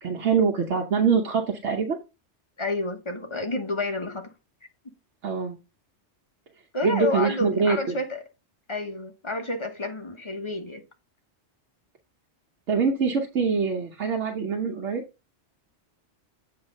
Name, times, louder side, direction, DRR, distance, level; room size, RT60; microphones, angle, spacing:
voice 1, 0.0-2.0 5.2-5.6 6.8-8.0 12.7-15.0, right 5 dB, 80° right, 1.2 m, -24 dB
voice 2, 2.6-4.3 6.7-8.2 8.7-10.8, left 2 dB, 25° left, 1.0 m, -30 dB
8.0 x 3.2 x 5.2 m
omnidirectional pair, 1.2 m